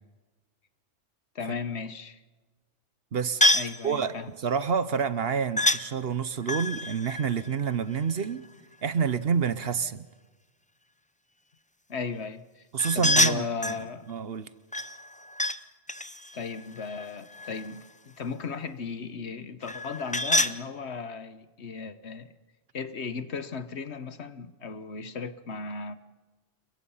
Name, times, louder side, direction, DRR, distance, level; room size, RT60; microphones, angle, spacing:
voice 1, 1.3-2.2 3.5-4.3 11.9-12.6 12.9-14.1 16.3-22.3 22.7-25.9, left 5 dB, 65° left, 1.4 m, -36 dB
voice 2, 3.1-3.4 3.8-4.2 4.4-8.5 8.8-10.1 12.7-13.7 14.1-14.5, right 6 dB, 55° right, 1.1 m, -28 dB
sound 1, 3.4-3.8 5.6-5.8 6.4-8.3 12.8-13.8 14.7-15.6 15.9-17.8 19.6-20.6, left 1 dB, 10° left, 0.4 m, -27 dB
28.5 x 23.0 x 5.7 m
omnidirectional pair, 1.2 m